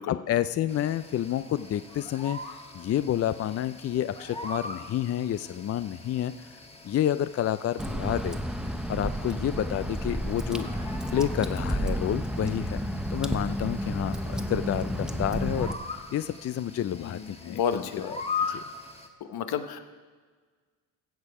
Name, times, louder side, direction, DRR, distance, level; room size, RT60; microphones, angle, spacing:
voice 1, 0.1-2.4 2.7-6.5 6.8-8.4 8.9-10.7 11.1-12.8 13.1-15.8 16.1-17.8 18.5-18.6, left 11 dB, 40° left, 13 dB, 0.4 m, -29 dB
sound 1, 0.7-19.1, left 4 dB, 15° left, 1.5 m, -41 dB
Water / Drip, 7.8-15.7, equal, ahead, 0.8 m, -31 dB
voice 2, 16.9-18.1 18.5-18.6 19.2-19.8, left 8 dB, 70° left, 9 dB, 1.0 m, -32 dB
15.5 x 7.0 x 4.8 m, 1.5 s
supercardioid pair, 75°, 39 cm